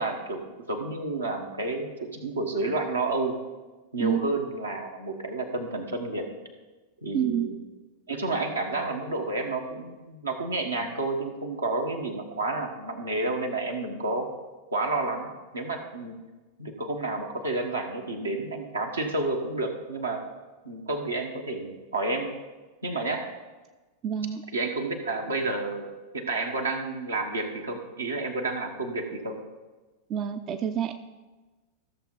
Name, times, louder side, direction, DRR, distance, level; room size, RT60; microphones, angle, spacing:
voice 1, 0.0-3.4 3.9-6.3 7.0-7.6 8.1-14.3 14.7-16.2 16.6-20.2 20.6-22.3 22.8-23.2 24.5-29.4, right 2 dB, 75° right, 2 dB, 1.4 m, -30 dB
voice 2, 7.1-7.5 24.0-24.4 30.1-30.9, right 9 dB, 35° right, 8 dB, 0.5 m, -27 dB
14.5 x 6.9 x 3.9 m, 1.2 s
figure-of-eight pair, 90°, 0 cm